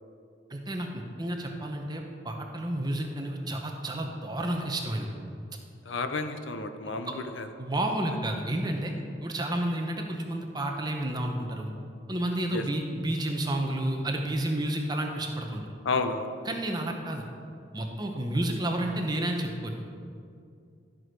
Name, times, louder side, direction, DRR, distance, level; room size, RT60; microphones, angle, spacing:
voice 1, 0.5-5.1 7.6-8.9 9.2-11.7 12.1-15.7 16.5-17.3 17.7-19.7, right 1 dB, 20° right, 2 dB, 0.9 m, -31 dB
voice 2, 5.9-7.5 12.5-12.6 15.8-16.3, left 3 dB, 80° left, 8 dB, 0.7 m, -31 dB
12.5 x 6.3 x 4.7 m, 2.4 s
head